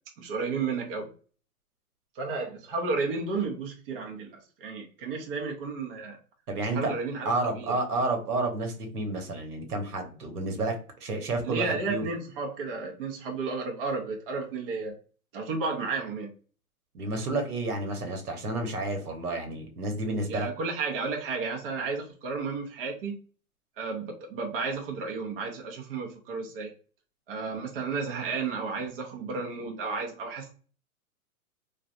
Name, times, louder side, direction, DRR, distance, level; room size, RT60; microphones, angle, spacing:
voice 1, 0.2-1.1 2.2-6.2 6.7-7.7 11.4-14.9 15.3-16.3 20.3-23.2 23.8-26.7 27.3-30.5, right 4 dB, 40° right, 0 dB, 0.7 m, -32 dB
voice 2, 6.5-7.0 7.2-12.1 16.9-20.5, right 2 dB, 85° right, 3 dB, 1.2 m, -30 dB
3.5 x 2.4 x 2.5 m, 0.39 s
hypercardioid pair, 145°, 44 cm